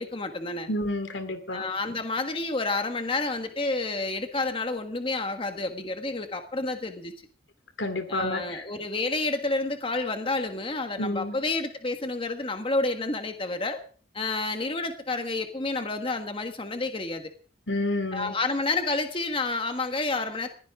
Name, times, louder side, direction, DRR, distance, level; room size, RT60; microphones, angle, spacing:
voice 1, 0.0-0.7 1.5-7.1 8.1-13.8 14.1-17.2 18.1-20.5, left 3 dB, 30° left, 6 dB, 1.6 m, -29 dB
voice 2, 0.7-1.6 7.8-8.6 11.0-11.4 17.7-18.3, left 1 dB, 80° left, 9 dB, 2.6 m, -29 dB
21.0 x 16.0 x 3.7 m, 0.42 s
head